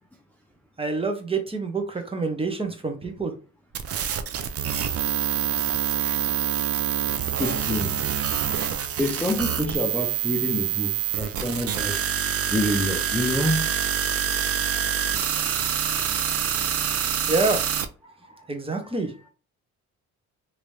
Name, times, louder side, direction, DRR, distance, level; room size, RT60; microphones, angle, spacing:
voice 1, 0.8-3.3 17.3-17.6 18.0-18.1 18.5-19.1, right 3 dB, 20° right, 1.0 m, -27 dB
sound 1, 3.7-17.9, right 9 dB, 50° right, 0.5 m, -26 dB
voice 2, 7.4-8.0 9.0-12.0 12.5-13.7, left 1 dB, 5° left, 0.5 m, -27 dB
2.9 x 2.7 x 3.3 m
cardioid pair, 90°, 30 cm